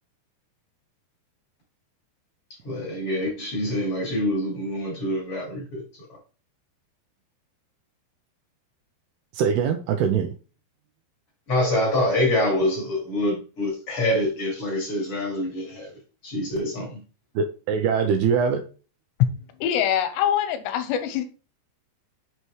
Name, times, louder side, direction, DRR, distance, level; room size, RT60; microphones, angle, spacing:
voice 1, 2.6-5.8 11.5-15.9 16.2-17.0, left 1 dB, 40° left, 2.3 m, -25 dB
voice 2, 9.3-10.3 17.4-18.6, right 6 dB, 85° right, 2.3 m, -22 dB
voice 3, 19.6-21.2, left 9 dB, 85° left, 2.8 m, -24 dB
6.7 x 5.6 x 3.1 m
omnidirectional pair, 5.1 m